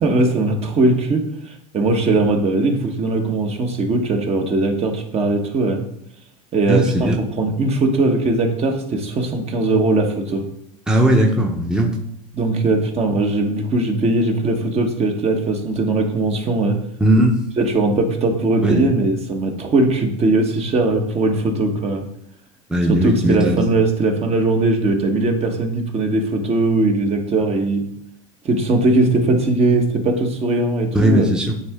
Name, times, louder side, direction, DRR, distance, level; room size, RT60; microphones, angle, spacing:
voice 1, 0.0-5.8 6.5-10.4 12.3-16.8 17.6-22.0 22.9-27.9 28.4-31.3, right 2 dB, 35° right, 3 dB, 1.3 m, -19 dB
voice 2, 6.7-7.1 10.9-11.9 17.0-17.4 18.6-18.8 22.7-23.6 30.9-31.5, right 1 dB, 5° right, 0 dB, 0.9 m, -17 dB
9.5 x 3.6 x 3.6 m, 0.72 s
supercardioid pair, 105°, 18 cm